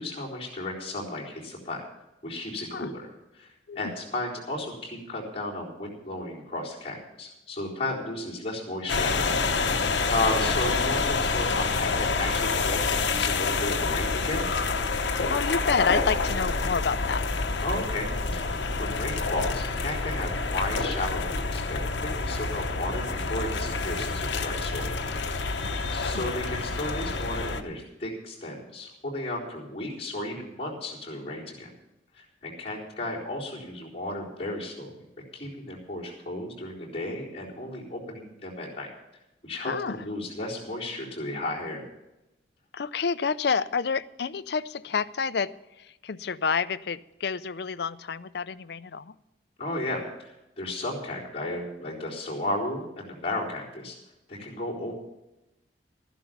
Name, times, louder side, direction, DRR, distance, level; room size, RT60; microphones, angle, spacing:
voice 1, 0.0-1.8 2.2-3.5 3.7-9.4 10.1-14.4 17.6-18.5 18.8-25.0 25.9-31.7 32.1-34.9 35.3-38.9 39.4-41.8 49.6-54.0 54.3-54.9, left 1 dB, 30° left, -5 dB, 4.0 m, -34 dB
sound 1, 8.9-27.6, left 4 dB, 75° left, 1.0 m, -28 dB
sound 2, 10.1-21.7, left 2 dB, 10° right, 2.9 m, -45 dB
voice 2, 15.3-17.2 25.6-25.7 26.1-26.3 39.6-40.0 42.7-45.5 46.0-49.1, left 5 dB, 60° left, 15 dB, 0.5 m, -29 dB
13.5 x 11.5 x 5.8 m, 0.95 s
head